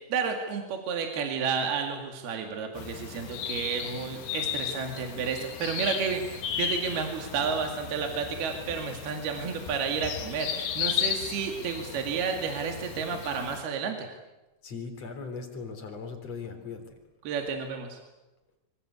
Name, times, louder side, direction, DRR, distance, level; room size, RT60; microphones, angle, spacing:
voice 1, 0.1-14.1 17.3-18.0, right 6 dB, 60° right, 4 dB, 3.9 m, -31 dB
sound 1, 2.8-13.6, left 9 dB, 70° left, 3.9 m, -35 dB
voice 2, 14.6-17.0, left 5 dB, 35° left, 5 dB, 4.4 m, -39 dB
25.5 x 25.0 x 8.2 m, 1.0 s
omnidirectional pair, 5.5 m